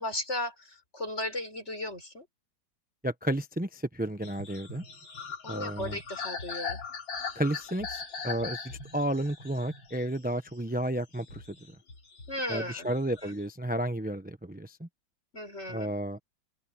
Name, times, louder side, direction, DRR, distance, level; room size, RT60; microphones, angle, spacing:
voice 1, 0.0-2.3 5.4-6.8 12.3-12.9 13.2-13.4 15.3-15.9, left 1 dB, 35° left, 6.5 m, -36 dB
voice 2, 3.0-4.8 5.5-6.0 7.3-11.4 12.5-14.9 15.7-16.2, right 1 dB, 10° right, 0.4 m, -32 dB
sound 1, 4.2-10.7 11.1-12.5 12.8-13.4, left 5 dB, 85° left, 4.5 m, -40 dB
open air
omnidirectional pair, 2.0 m